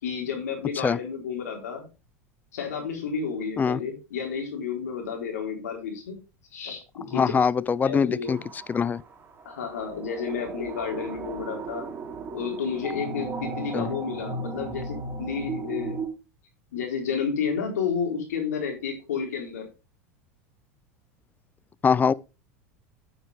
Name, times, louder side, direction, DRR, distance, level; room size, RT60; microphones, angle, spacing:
voice 1, 0.0-1.8 2.5-6.2 6.5-7.3 7.6-8.4 9.4-11.9 12.3-16.0 16.7-19.7, left 6 dB, 85° left, 4.3 m, -31 dB
voice 2, 7.1-8.4 8.7-9.0 13.7-13.9 21.8-22.1, left 6 dB, 20° left, 0.5 m, -23 dB
sound 1, 8.3-16.1, right 3 dB, 30° right, 3.8 m, -36 dB
9.4 x 8.1 x 3.6 m
hypercardioid pair, 95°, 8 cm